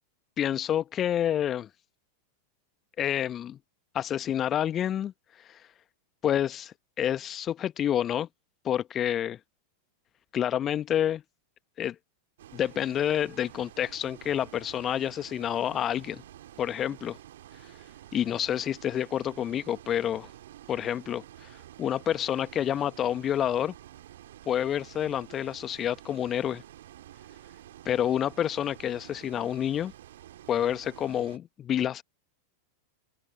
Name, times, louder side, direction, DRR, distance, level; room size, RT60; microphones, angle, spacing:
voice 1, 0.4-1.7 3.0-3.6 3.9-5.1 5.5-5.6 6.2-8.3 8.6-9.4 10.3-11.2 11.8-11.9 12.5-16.2 16.6-17.2 18.1-20.3 20.7-21.5 21.8-23.7 24.5-26.6 27.8-29.9 30.5-32.0, left 10 dB, 30° left, 1.3 m, -28 dB
Bus, 12.4-31.4, right 12 dB, 60° right, 2.8 m, -50 dB
open air
figure-of-eight pair, 90°, 0 cm